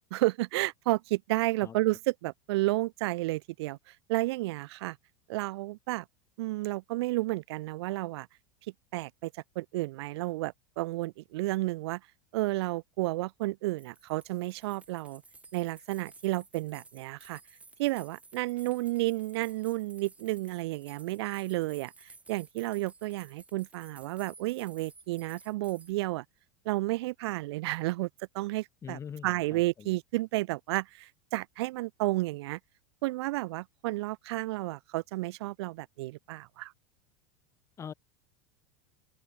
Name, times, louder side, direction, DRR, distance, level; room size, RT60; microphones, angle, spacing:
voice 1, 0.1-3.8 4.1-5.0 5.3-6.0 6.4-8.3 8.9-12.0 12.3-15.2 15.5-17.4 17.8-26.2 26.6-28.1 28.3-32.6 33.0-36.7, right 19 dB, 70° right, 1.2 m, -32 dB
sound 1, 13.8-25.9, right 3 dB, 10° right, 7.0 m, -56 dB
voice 2, 28.8-29.9 37.8-37.9, left 7 dB, 20° left, 2.5 m, -43 dB
open air
supercardioid pair, 150°, 14 cm